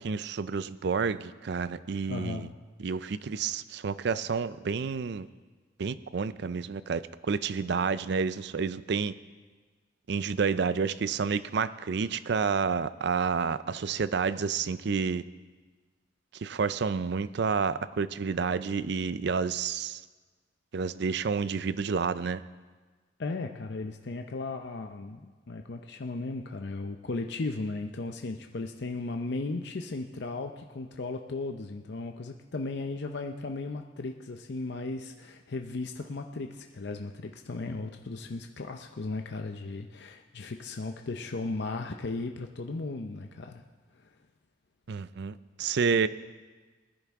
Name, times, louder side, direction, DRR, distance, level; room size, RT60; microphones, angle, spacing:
voice 1, 0.0-2.5 2.8-5.3 5.8-9.1 10.1-15.2 16.3-20.0 20.7-22.4 44.9-46.1, right 5 dB, 60° right, 15 dB, 0.4 m, -29 dB
voice 2, 2.1-2.5 23.2-43.6 43.9-44.1, left 3 dB, 60° left, 4 dB, 0.6 m, -36 dB
20.0 x 10.5 x 3.6 m, 1.4 s
head